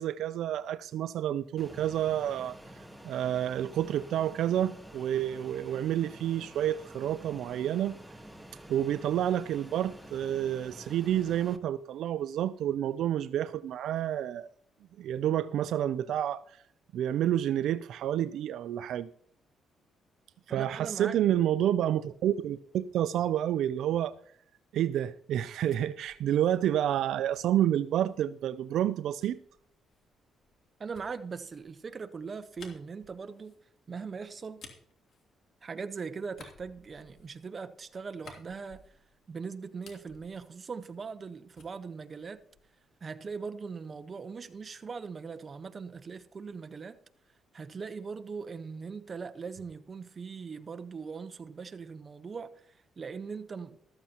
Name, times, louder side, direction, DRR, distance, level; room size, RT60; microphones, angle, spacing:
voice 1, 0.0-2.6 3.0-8.0 8.7-14.5 15.0-16.6 16.9-19.1 20.5-24.2 24.7-29.4, right 11 dB, 75° right, 0.4 m, -29 dB
Fixed-wing aircraft airplane, 1.6-11.6, right 1 dB, 5° right, 1.1 m, -49 dB
voice 2, 20.5-21.2 30.8-33.6 33.9-34.6 35.6-38.8 39.3-42.4 43.0-47.0 47.5-53.8, right 5 dB, 40° right, 0.9 m, -40 dB
sound 1, 25.3-28.3 29.2-35.9 36.3-39.3 39.6-41.3 41.5-42.9, left 4 dB, 60° left, 2.9 m, -57 dB
14.0 x 13.5 x 2.9 m
cardioid pair, 90°, 0 cm